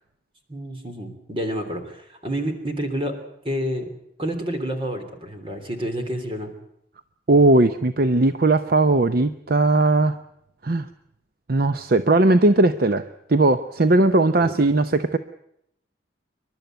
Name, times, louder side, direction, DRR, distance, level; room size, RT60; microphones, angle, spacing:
voice 1, 0.5-3.1 3.4-3.9 4.2-6.5 14.4-14.5, equal, 30° right, 5 dB, 3.3 m, -29 dB
voice 2, 7.3-10.2 10.6-10.9 11.5-13.0 13.3-15.2, right 2 dB, 50° right, 10 dB, 0.7 m, -18 dB
27.5 x 12.0 x 9.2 m, 0.77 s
head